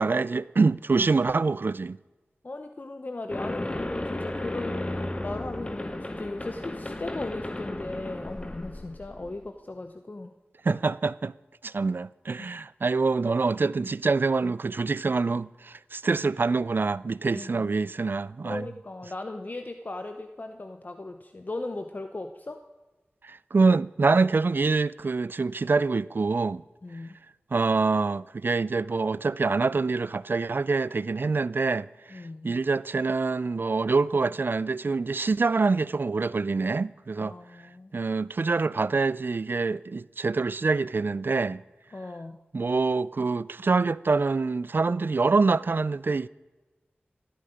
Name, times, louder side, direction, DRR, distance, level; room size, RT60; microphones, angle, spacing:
voice 1, 0.0-2.0 10.6-11.3 11.6-18.7 23.2-26.6 27.5-37.3 37.9-41.6 42.5-46.3, right 4 dB, 60° right, 0.4 m, -25 dB
voice 2, 2.4-10.3 12.4-12.5 17.3-17.7 18.4-22.6 26.8-27.2 32.1-32.6 37.2-37.9 41.9-42.4, left 2 dB, 45° left, 0.8 m, -37 dB
sound 1, 3.3-9.4, left 1 dB, 25° left, 1.2 m, -34 dB
16.0 x 13.5 x 5.1 m
wide cardioid pair, 50°, 4 cm